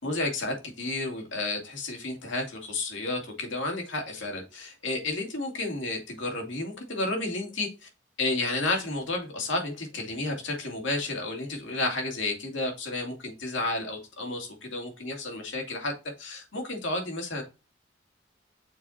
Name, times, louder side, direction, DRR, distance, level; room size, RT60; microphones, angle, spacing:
voice 1, 0.0-7.9 8.2-15.9 16.2-17.4, left 2 dB, 75° left, 2.6 m, -31 dB
6.6 x 4.4 x 4.3 m
head